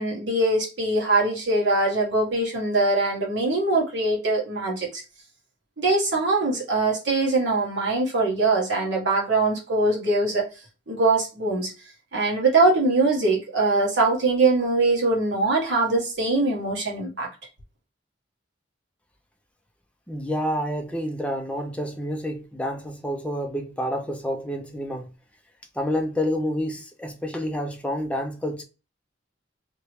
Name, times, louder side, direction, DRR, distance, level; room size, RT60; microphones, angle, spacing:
voice 1, 0.0-5.0 5.8-10.4 10.9-11.7 12.1-17.3, right 2 dB, 65° right, 1.4 m, -22 dB
voice 2, 20.1-25.1 25.7-28.6, equal, 5° left, 0.5 m, -28 dB
2.9 x 2.9 x 3.1 m
head